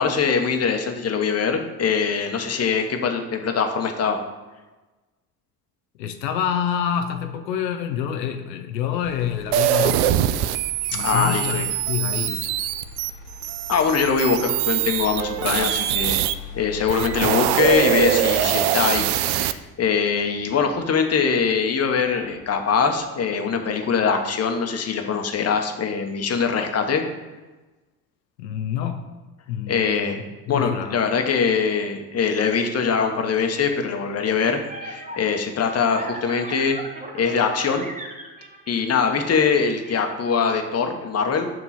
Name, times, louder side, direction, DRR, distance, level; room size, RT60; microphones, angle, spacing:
voice 1, 0.0-4.2 11.0-11.7 13.7-16.2 16.5-27.0 29.7-30.2 30.5-36.8 37.2-37.9 38.7-41.5, left 6 dB, 30° left, 5 dB, 1.0 m, -22 dB
voice 2, 6.0-10.3 10.9-12.4 17.0-17.6 28.4-29.0 29.5-30.2 30.5-31.0, left 9 dB, 85° left, 6 dB, 0.6 m, -27 dB
Motor vehicle (road), 9.0-23.0 23.5-24.0, left 3 dB, 50° left, 1.3 m, -42 dB
sound 1, 9.5-16.3 16.8-19.5, right 12 dB, 55° right, 0.5 m, -23 dB
sound 2, 34.1-39.9, right 1 dB, 15° right, 1.1 m, -38 dB
7.4 x 2.9 x 5.7 m, 1.2 s
hypercardioid pair, 65°, 48 cm